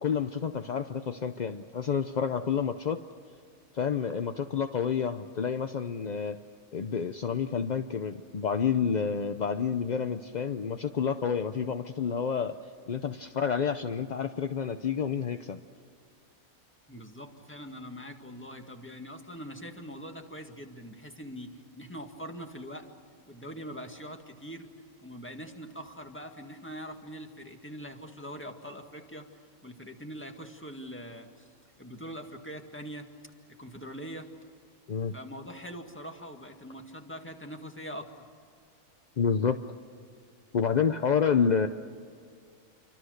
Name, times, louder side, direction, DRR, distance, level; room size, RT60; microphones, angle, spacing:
voice 1, 0.0-3.0 3.7-6.4 6.7-12.5 12.9-15.6 34.9-35.1 39.2-39.6 40.5-41.7, left 6 dB, 50° left, 8 dB, 0.5 m, -29 dB
voice 2, 16.9-22.9 23.3-24.7 25.0-29.3 29.6-31.5 31.8-33.1 33.6-34.3 35.1-38.1, equal, 10° left, 4 dB, 1.9 m, -43 dB
28.0 x 24.5 x 6.6 m, 2.3 s
omnidirectional pair, 1.6 m